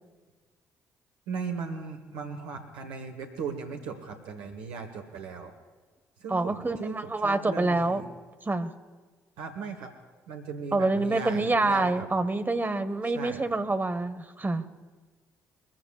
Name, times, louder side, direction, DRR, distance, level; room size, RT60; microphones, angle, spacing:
voice 1, 1.3-5.5 6.2-8.0 9.4-9.9 10.3-12.1 13.0-13.4, right 5 dB, 75° right, 4 dB, 1.3 m, -37 dB
voice 2, 6.3-8.0 8.4-8.7 10.7-14.6, right 2 dB, 20° right, 10 dB, 1.3 m, -26 dB
22.5 x 15.0 x 2.4 m, 1.4 s
hypercardioid pair, 45°, 9 cm